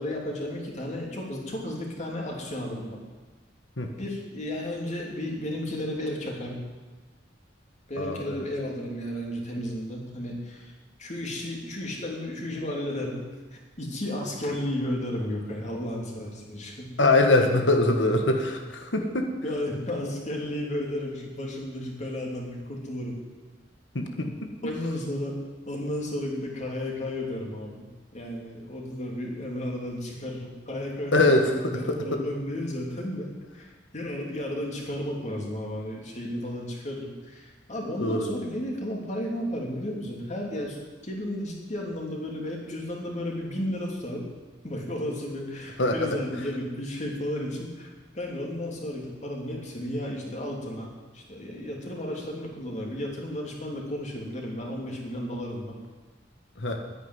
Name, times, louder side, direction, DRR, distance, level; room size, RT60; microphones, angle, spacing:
voice 1, 0.0-3.0 3.9-6.6 7.9-10.7 11.0-13.2 13.5-16.9 19.4-23.2 24.6-25.4 25.7-31.2 31.5-40.8 41.0-44.3 44.6-47.9 48.1-50.9 51.1-55.8, left 1 dB, 40° left, -1 dB, 3.0 m, -33 dB
voice 2, 8.0-8.4 17.0-19.3 23.9-24.5 31.1-32.2 38.0-38.3 45.8-46.1 56.6-56.8, left 2 dB, 80° left, 4 dB, 1.7 m, -23 dB
10.0 x 10.0 x 9.6 m, 1.3 s
head